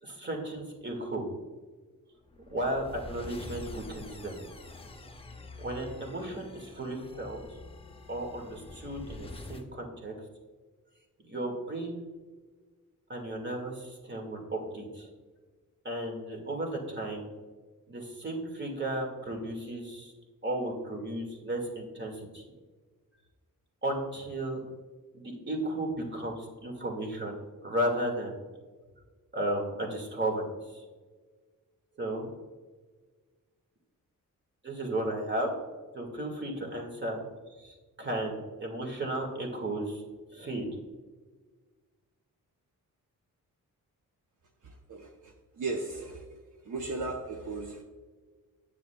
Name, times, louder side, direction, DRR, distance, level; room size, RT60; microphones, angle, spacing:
voice 1, 0.0-1.3 2.5-4.3 5.6-7.4 8.1-10.1 11.3-12.0 13.1-15.1 15.8-17.3 17.9-20.1 20.4-22.4 23.8-24.6 25.1-28.3 29.3-30.5 30.7-30.8 32.0-32.3 34.6-35.5 35.9-37.2 37.6-40.0 40.3-40.7, right 1 dB, 35° right, 1 dB, 1.9 m, -34 dB
sound 1, 2.3-9.7, left 2 dB, 15° left, 0.7 m, -46 dB
voice 2, 44.6-46.2 46.6-47.8, right 3 dB, 65° right, 2 dB, 0.9 m, -36 dB
9.3 x 7.2 x 2.3 m, 1.4 s
cardioid pair, 95°, 33 cm